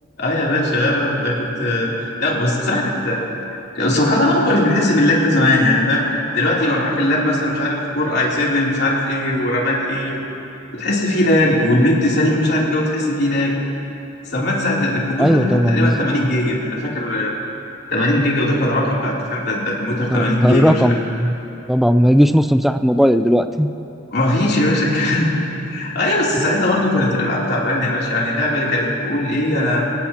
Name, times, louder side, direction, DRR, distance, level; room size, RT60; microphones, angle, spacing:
voice 1, 0.2-1.9 2.2-3.3 3.7-6.0 6.3-10.2 10.7-13.5 14.3-17.3 17.9-20.9 24.1-25.4 25.7-29.9, left 1 dB, 55° left, -5 dB, 3.2 m, -19 dB
voice 2, 15.2-16.3 20.1-21.3 21.7-23.7, equal, ahead, 9 dB, 0.4 m, -16 dB
24.5 x 17.5 x 2.9 m, 2.9 s
head